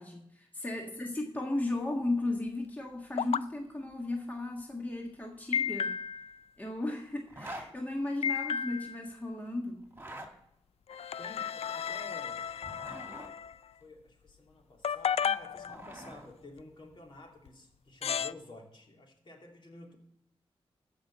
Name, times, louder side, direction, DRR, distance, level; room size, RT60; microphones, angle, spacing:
voice 1, 0.0-5.9 6.6-9.8, left 2 dB, 15° left, 0 dB, 1.6 m, -35 dB
sound 1, 3.2-3.4 5.5-6.4 8.2-9.0 10.9-13.6 14.8-16.1 17.5-17.6 18.0-18.3, left 7 dB, 70° left, 0.4 m, -33 dB
Zipper (clothing), 7.3-7.7 9.8-10.3 12.4-13.3 15.2-16.3, right 1 dB, 20° right, 2.2 m, -45 dB
voice 2, 11.2-12.5 13.7-20.0, left 2 dB, 50° left, 0 dB, 2.9 m, -52 dB
14.5 x 5.6 x 7.5 m, 0.75 s
wide cardioid pair, 80°, 11 cm